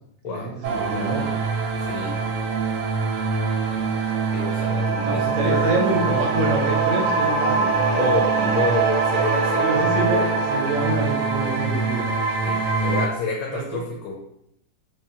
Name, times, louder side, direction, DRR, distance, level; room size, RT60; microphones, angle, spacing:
voice 1, 0.2-1.2 5.0-7.7 8.4-8.5 9.6-10.2 10.5-12.0 13.5-13.8, right 2 dB, 60° right, -1 dB, 1.0 m, -26 dB
sound 1, 0.6-13.1, right 4 dB, 85° right, 1.2 m, -23 dB
voice 2, 1.9-2.2 4.3-5.8 7.9-10.3 12.4-14.2, left 4 dB, 90° left, -1 dB, 1.2 m, -29 dB
3.4 x 3.2 x 2.8 m, 0.76 s
omnidirectional pair, 1.8 m